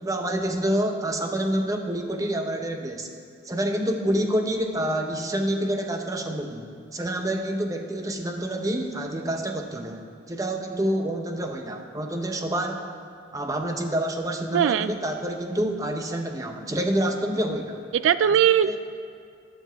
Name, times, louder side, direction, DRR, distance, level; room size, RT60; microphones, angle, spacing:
voice 1, 0.0-3.1 3.4-10.0 10.3-12.9 13.3-17.8 18.2-18.3 18.6-18.8, right 1 dB, 20° right, 4 dB, 0.8 m, -27 dB
voice 2, 14.5-14.9 17.9-18.8, right 9 dB, 80° right, 14 dB, 0.3 m, -20 dB
14.5 x 11.5 x 3.5 m, 2.4 s
head